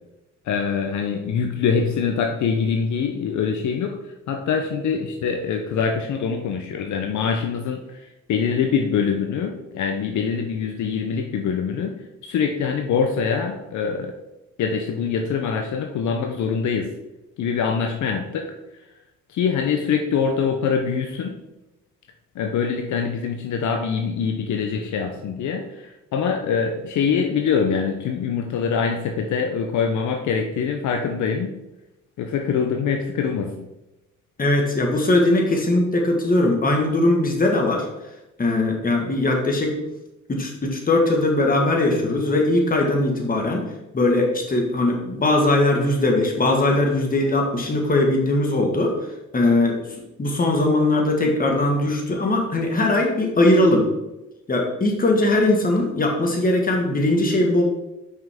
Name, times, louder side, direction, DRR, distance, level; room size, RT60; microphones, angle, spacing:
voice 1, 0.5-4.0 4.3-7.8 8.3-11.9 12.2-14.2 14.6-16.9 17.4-18.5 19.3-21.3 22.4-31.5 32.2-33.7, left 6 dB, 70° left, 3 dB, 0.8 m, -24 dB
voice 2, 34.4-37.9 38.4-39.8 40.3-43.6 43.9-48.9 49.3-49.8 50.2-53.9 54.5-57.6, left 2 dB, 30° left, 1 dB, 1.6 m, -20 dB
5.6 x 5.6 x 3.6 m, 0.96 s
cardioid pair, 90°, 30 cm